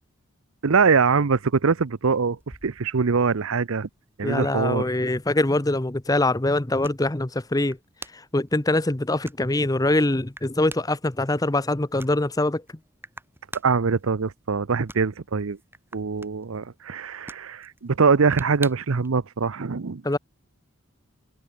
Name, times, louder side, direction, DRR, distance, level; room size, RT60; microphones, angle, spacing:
voice 1, 0.6-3.9 4.2-4.8 13.6-15.6 15.9-20.0, right 5 dB, 70° right, 0.7 m, -23 dB
sound 1, 2.3-19.1, right 2 dB, 10° right, 6.4 m, -48 dB
voice 2, 4.2-7.8 8.1-12.6 20.0-20.2, left 2 dB, 15° left, 0.7 m, -23 dB
head